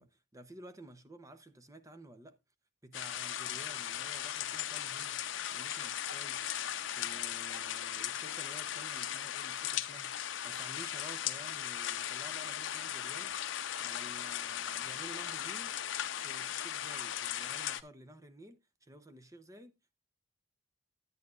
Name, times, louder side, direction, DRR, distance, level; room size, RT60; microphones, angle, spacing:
voice 1, 0.0-2.4 2.8-5.3 5.5-6.5 7.0-10.2 10.4-15.7 16.2-19.9, right 1 dB, 15° right, 0.7 m, -53 dB
sound 1, 2.9-17.8, left 11 dB, 75° left, 0.6 m, -38 dB
10.5 x 9.3 x 2.5 m
head